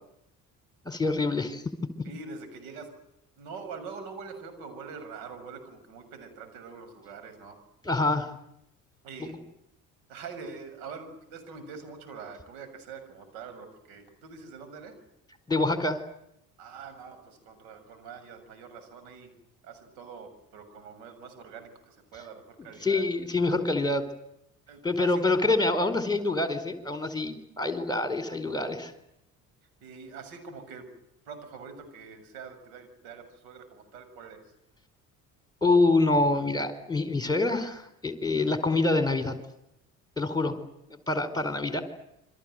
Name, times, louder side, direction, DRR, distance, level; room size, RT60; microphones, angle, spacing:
voice 1, 0.8-1.6 7.8-8.3 9.2-9.3 15.5-16.0 22.8-24.1 24.8-28.9 35.6-39.4 40.2-40.6 41.1-41.8, left 2 dB, 10° left, 9 dB, 4.5 m, -26 dB
voice 2, 2.0-2.9 3.4-7.6 9.0-9.4 10.1-14.9 16.6-19.3 19.6-23.0 24.7-25.2 29.8-30.9 31.3-34.4, right 5 dB, 70° right, 8 dB, 6.9 m, -44 dB
28.5 x 25.0 x 7.9 m, 0.79 s
figure-of-eight pair, 55°, 43 cm